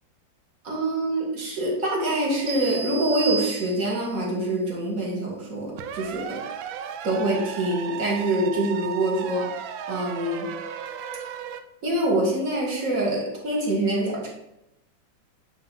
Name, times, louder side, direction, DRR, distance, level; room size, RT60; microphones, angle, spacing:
voice 1, 0.6-6.4 7.0-9.6 9.9-10.5 11.8-14.3, right 1 dB, 45° right, -3 dB, 2.2 m, -25 dB
sound 1, 2.5-4.2, right 5 dB, 70° right, 1.5 m, -32 dB
sound 2, 5.8-11.6, right 8 dB, 85° right, 1.3 m, -35 dB
9.0 x 3.2 x 5.5 m, 0.86 s
omnidirectional pair, 2.0 m